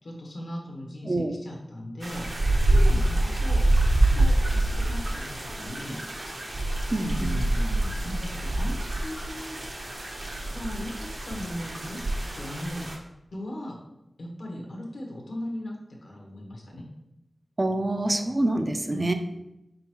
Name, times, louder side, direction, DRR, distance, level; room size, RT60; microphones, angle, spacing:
voice 1, 0.0-2.2 2.7-3.7 3.9-6.0 6.9-9.6 10.5-12.0 12.3-12.9 13.3-13.8 14.2-16.8 18.9-19.1, left 1 dB, 80° left, -1 dB, 1.2 m, -38 dB
voice 2, 1.0-1.4 6.9-7.4 17.6-19.1, right 1 dB, 40° right, 6 dB, 0.5 m, -26 dB
sound 1, 2.0-13.0, right 1 dB, 60° right, 0.9 m, -26 dB
4.5 x 3.8 x 3.0 m, 0.88 s
cardioid pair, 50°, 0 cm